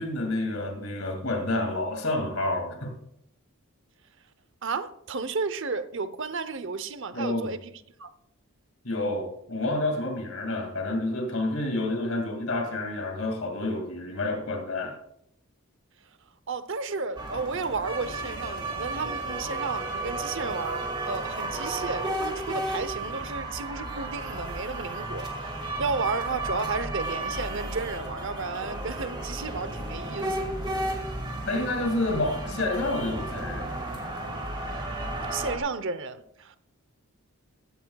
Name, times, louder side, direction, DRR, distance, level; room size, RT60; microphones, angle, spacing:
voice 1, 0.0-3.0 7.1-7.5 8.8-15.0 31.5-33.9, left 2 dB, 70° left, 2.3 m, -29 dB
voice 2, 4.6-8.1 16.5-30.5 35.3-36.6, right 4 dB, 55° right, 0.8 m, -33 dB
sound 1, 17.2-35.6, right 1 dB, 20° right, 2.2 m, -33 dB
15.0 x 13.5 x 2.3 m
head